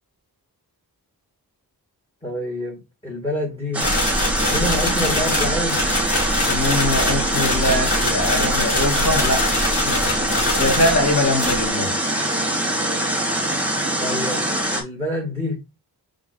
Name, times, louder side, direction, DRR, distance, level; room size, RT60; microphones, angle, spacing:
voice 1, 2.2-3.9 4.5-5.8 14.0-14.4 14.7-15.6, left 1 dB, 15° left, 1.7 m, -27 dB
sound 1, 3.7-14.8, right 1 dB, 5° right, 1.6 m, -23 dB
sound 2, 3.8-11.1 11.3-11.6, left 1 dB, 90° left, 2.6 m, -24 dB
voice 2, 6.5-9.6 9.8-12.0, left 1 dB, 45° left, 2.3 m, -23 dB
6.0 x 3.8 x 2.2 m
wide cardioid pair, 140°, 39 cm